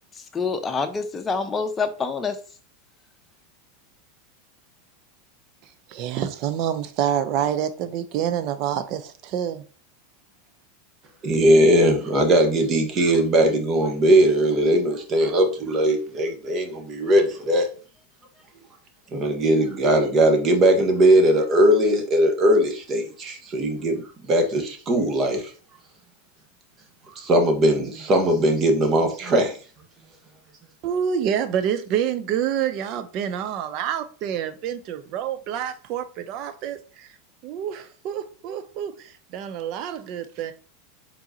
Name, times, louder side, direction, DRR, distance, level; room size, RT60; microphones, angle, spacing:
voice 1, 0.2-2.4, left 4 dB, 20° left, 0.8 m, -26 dB
voice 2, 5.9-9.6 30.8-37.1 37.4-40.5, right 9 dB, 50° right, 0.6 m, -27 dB
voice 3, 11.2-17.7 19.1-25.5 27.1-29.6, right 1 dB, 35° right, 1.3 m, -19 dB
4.6 x 4.0 x 2.8 m
hypercardioid pair, 100°, 0 cm